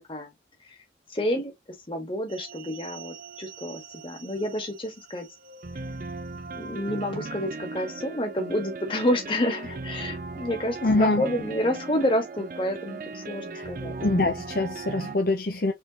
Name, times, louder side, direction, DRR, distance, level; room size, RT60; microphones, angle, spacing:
voice 1, 1.1-1.5 1.9-5.3 6.5-14.0, left 1 dB, 30° left, 1.7 m, -29 dB
sound 1, 2.3-15.2, right 3 dB, 50° right, 0.5 m, -38 dB
voice 2, 10.8-11.2 13.5-13.6 14.0-15.7, left 2 dB, 55° left, 0.7 m, -24 dB
4.5 x 3.7 x 3.0 m
head